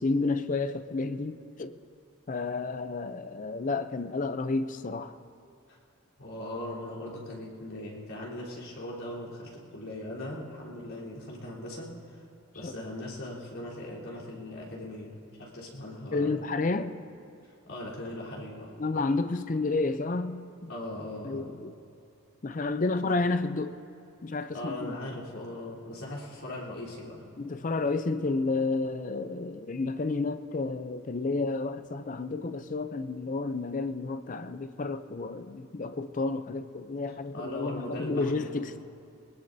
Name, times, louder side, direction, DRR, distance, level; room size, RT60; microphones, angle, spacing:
voice 1, 0.0-1.8 2.3-5.2 12.6-12.7 16.1-17.0 18.8-20.7 21.2-21.7 22.4-23.8 24.2-25.0 27.4-38.8, left 3 dB, 40° left, 0.4 m, -31 dB
voice 2, 6.2-12.2 12.5-15.1 15.4-16.3 17.7-18.7 20.7-21.5 23.0-23.1 24.5-27.3 37.3-38.7, left 1 dB, 75° left, 3.6 m, -39 dB
20.5 x 20.0 x 2.7 m
head